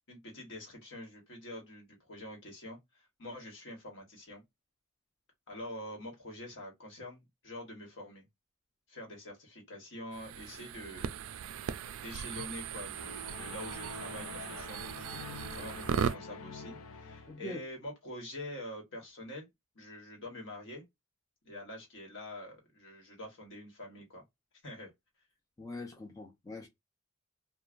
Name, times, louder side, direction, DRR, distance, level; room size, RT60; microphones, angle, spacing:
voice 1, 0.1-4.4 5.5-8.2 8.9-11.6 11.9-19.5 19.7-20.8 21.4-24.2 24.6-24.9, left 1 dB, 60° left, 1.3 m, -46 dB
sound 1, 10.1-16.2, right 8 dB, 80° right, 0.3 m, -38 dB
sound 2, 12.9-17.5, left 4 dB, 80° left, 0.4 m, -46 dB
voice 2, 17.3-17.6 25.6-26.7, left 1 dB, 15° left, 0.5 m, -42 dB
3.1 x 2.2 x 2.4 m
head